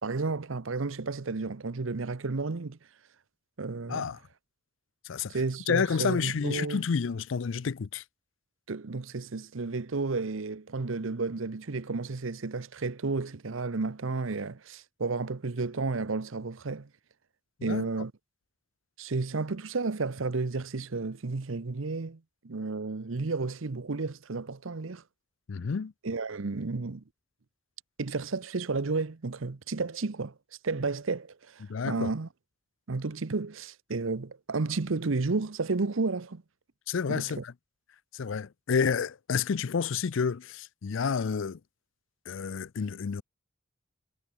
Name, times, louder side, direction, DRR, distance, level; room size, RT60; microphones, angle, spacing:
voice 1, 0.0-2.8 3.6-4.1 5.3-6.8 8.7-16.9 17.6-18.1 19.0-25.0 26.0-27.0 28.0-30.3 30.6-32.3 32.9-36.4 37.1-37.4, right 3 dB, 75° right, 0.8 m, -32 dB
voice 2, 5.0-5.4 5.7-8.0 17.6-17.9 25.5-25.9 31.7-32.1 36.9-37.5 38.1-41.6 42.3-43.2, left 6 dB, 70° left, 0.5 m, -30 dB
head